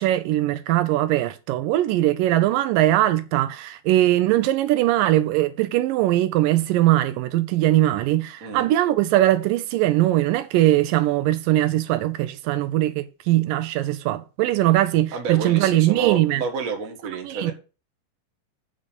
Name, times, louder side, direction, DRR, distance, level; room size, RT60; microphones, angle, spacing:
voice 1, 0.0-16.4 17.2-17.5, right 14 dB, 80° right, 2.2 m, -21 dB
voice 2, 8.4-8.7 15.1-17.5, right 6 dB, 35° right, 1.4 m, -29 dB
8.8 x 5.3 x 5.3 m
omnidirectional pair, 4.0 m